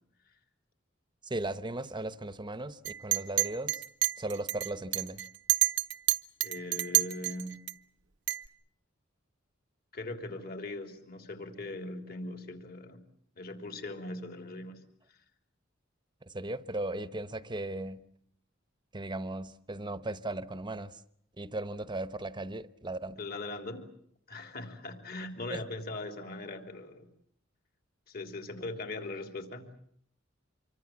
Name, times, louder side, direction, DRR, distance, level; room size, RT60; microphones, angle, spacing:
voice 1, 1.2-3.8 4.2-5.2 16.2-18.0 18.9-21.0 21.4-23.2 25.5-25.6, right 2 dB, 25° right, 1.0 m, -37 dB
Chink clink, 2.8-7.7 8.3-8.5, right 17 dB, 65° right, 0.9 m, -29 dB
voice 2, 6.4-7.7 9.9-13.0 13.4-14.8 15.1-15.2 23.2-23.9 24.3-27.1 28.1-29.7, left 2 dB, 50° left, 3.5 m, -40 dB
26.5 x 24.0 x 7.4 m
head